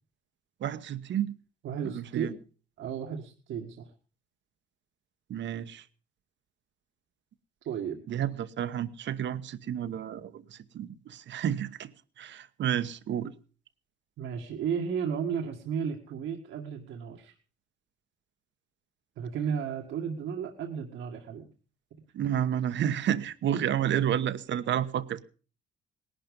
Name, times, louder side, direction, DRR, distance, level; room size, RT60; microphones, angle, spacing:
voice 1, 0.6-1.3 1.8-2.3 5.3-5.8 8.1-11.9 12.2-13.3 22.1-25.2, right 10 dB, 65° right, 1.1 m, -30 dB
voice 2, 1.6-2.4 2.8-3.9 7.6-8.0 14.2-17.3 19.2-21.5 23.5-23.6 23.9-24.1, right 7 dB, 85° right, 1.9 m, -34 dB
18.5 x 11.5 x 5.3 m
cardioid pair, 90°, 20 cm